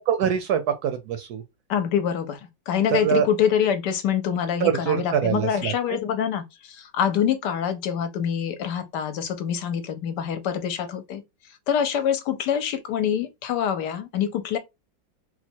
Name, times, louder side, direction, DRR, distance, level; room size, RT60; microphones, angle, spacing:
voice 1, 0.1-1.4 2.9-3.3 4.6-6.0, right 8 dB, 70° right, 0.9 m, -24 dB
voice 2, 1.7-2.4 2.7-11.2 11.7-14.6, left 8 dB, 70° left, 1.1 m, -25 dB
4.1 x 2.2 x 4.3 m
omnidirectional pair, 2.0 m